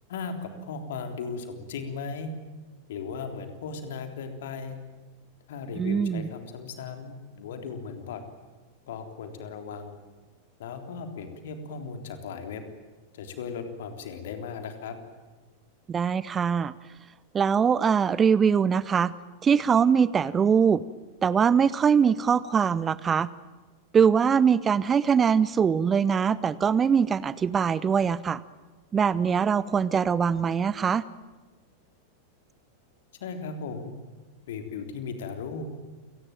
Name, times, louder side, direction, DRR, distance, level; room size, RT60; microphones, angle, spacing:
voice 1, 0.1-2.3 2.9-4.8 5.5-8.2 8.9-10.0 10.6-12.6 13.1-15.0 33.2-33.9 34.5-35.7, left 5 dB, 55° left, 7 dB, 3.6 m, -37 dB
voice 2, 5.8-6.3 15.9-16.7 17.3-19.1 19.4-20.8 21.2-23.3 23.9-28.4 28.9-31.0, right 7 dB, 20° right, 19 dB, 0.7 m, -22 dB
28.5 x 19.0 x 9.1 m, 1.3 s
figure-of-eight pair, 90°, 0 cm